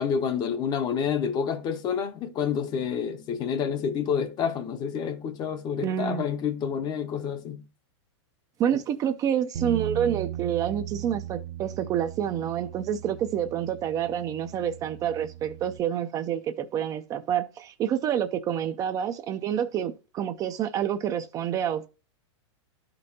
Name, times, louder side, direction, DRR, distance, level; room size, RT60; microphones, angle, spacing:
voice 1, 0.0-7.7, left 7 dB, 25° left, 0.7 m, -28 dB
voice 2, 5.8-6.2 8.6-21.9, right 9 dB, 25° right, 0.4 m, -28 dB
Bass guitar, 9.5-15.8, right 12 dB, 55° right, 0.7 m, -38 dB
11.5 x 5.2 x 2.7 m
hypercardioid pair, 145°, 15 cm